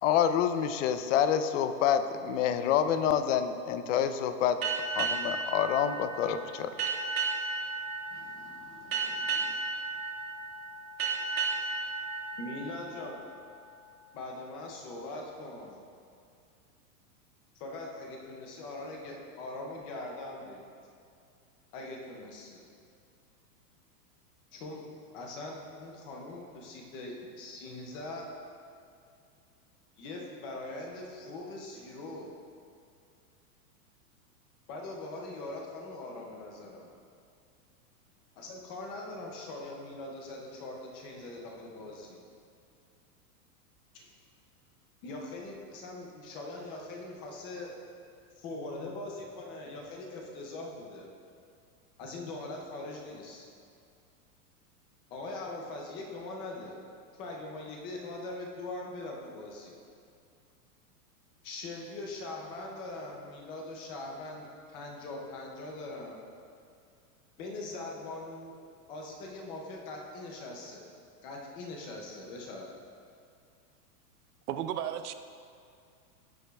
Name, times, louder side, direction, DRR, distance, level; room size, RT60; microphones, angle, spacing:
voice 1, 0.0-4.6 4.9-6.7, left 9 dB, 50° left, 10 dB, 0.7 m, -27 dB
sound 1, 4.6-13.8, right 4 dB, 25° right, 1.8 m, -34 dB
voice 2, 8.1-9.5 12.4-13.2 14.1-15.8 17.6-20.6 21.7-22.6 24.5-24.9 25.1-28.3 30.0-32.3 34.7-36.9 38.4-42.2 43.9-44.1 45.0-47.7 48.4-51.1 52.0-53.5 55.1-56.8 57.1-59.8 61.4-66.2 67.4-68.5 68.9-70.9 71.2-72.7, left 2 dB, 10° left, 0 dB, 0.4 m, -42 dB
voice 3, 74.5-75.1, right 10 dB, 75° right, 9 dB, 0.8 m, -33 dB
17.0 x 8.2 x 2.3 m, 2.4 s
supercardioid pair, 155°, 47 cm